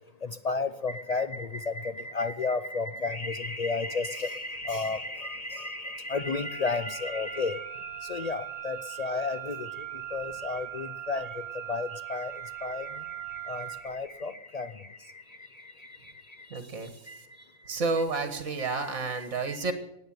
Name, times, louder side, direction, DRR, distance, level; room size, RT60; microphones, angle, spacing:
voice 1, 0.2-15.2 15.8-16.0 17.1-17.2 18.6-18.8 19.4-19.6, left 4 dB, 80° left, 11 dB, 0.3 m, -33 dB
Wind instrument woodwind instrument, 6.1-13.9, right 15 dB, 30° right, 3.1 m, -40 dB
voice 2, 16.5-17.1 17.7-19.7, right 3 dB, 55° right, 8 dB, 1.9 m, -30 dB
16.0 x 9.3 x 9.3 m, 0.86 s
omnidirectional pair, 1.5 m